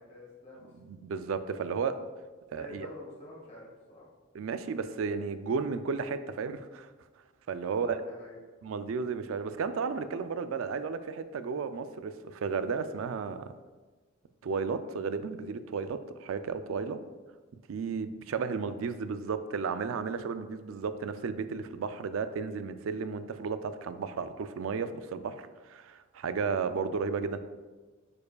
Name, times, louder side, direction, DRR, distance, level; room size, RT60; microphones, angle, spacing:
voice 1, 0.0-0.7 2.6-4.0 7.6-8.4 18.5-18.7, left 1 dB, 35° left, -4 dB, 1.6 m, -48 dB
voice 2, 0.8-2.0 2.5-2.9 4.3-6.9 7.5-8.0 8.6-13.5 14.4-17.0 17.7-27.4, right 5 dB, 80° right, 11 dB, 0.4 m, -33 dB
9.6 x 4.7 x 2.3 m, 1.3 s
head